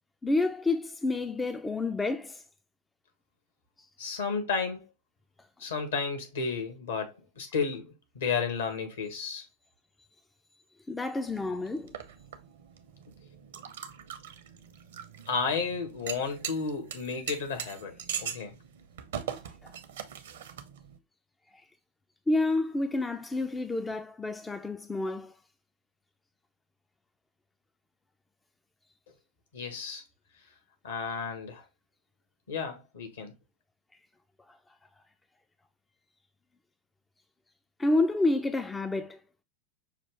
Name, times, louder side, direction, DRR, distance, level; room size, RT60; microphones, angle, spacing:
voice 1, 0.2-2.4 10.9-11.9 19.6-19.7 22.3-25.3 37.8-39.2, left 2 dB, 10° left, 0.3 m, -29 dB
voice 2, 4.0-4.8 5.6-9.4 15.3-17.9 18.2-18.5 29.5-30.0 30.8-31.6 32.5-33.3, left 5 dB, 65° left, 1.3 m, -32 dB
sound 1, 11.3-21.0, right 8 dB, 60° right, 0.6 m, -41 dB
5.6 x 2.4 x 3.3 m
figure-of-eight pair, 90°, 0 cm